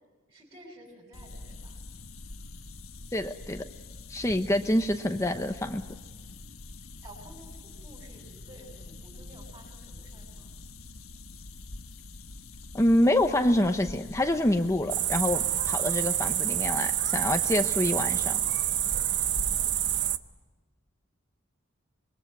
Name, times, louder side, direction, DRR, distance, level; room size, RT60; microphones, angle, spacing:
voice 1, 0.3-1.8 7.0-10.5, right 1 dB, 25° right, -5 dB, 6.8 m, -52 dB
sound 1, 1.1-20.1, left 2 dB, 75° left, 1.4 m, -45 dB
voice 2, 3.1-3.6 4.1-5.8 12.7-18.4, left 1 dB, 15° left, 6 dB, 0.9 m, -26 dB
sound 2, 14.9-20.2, right 12 dB, 55° right, 0.9 m, -27 dB
26.0 x 22.5 x 9.4 m, 1.3 s
head